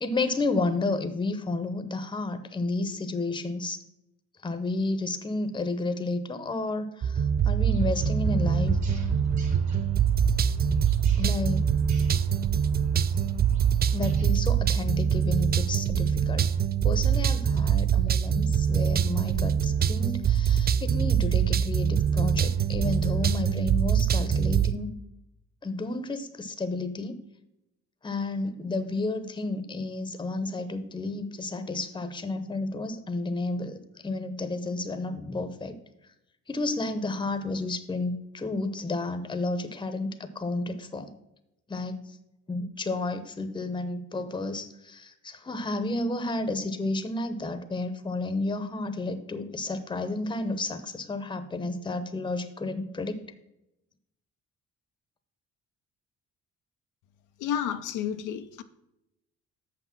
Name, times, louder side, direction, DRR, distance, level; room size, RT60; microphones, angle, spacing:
voice 1, 0.0-3.8 4.4-8.8 11.2-11.7 13.9-16.5 16.8-24.9 25.6-27.2 28.0-35.8 36.5-41.1 41.7-42.2 42.5-53.2, left 2 dB, 15° left, 0.8 m, -31 dB
sound 1, 7.0-24.7, right 8 dB, 35° right, 0.4 m, -24 dB
sound 2, 7.7-14.3, left 2 dB, 65° right, 2.3 m, -37 dB
voice 2, 57.4-58.6, left 9 dB, 85° left, 0.6 m, -31 dB
6.8 x 6.0 x 5.8 m
cardioid pair, 90°, 30 cm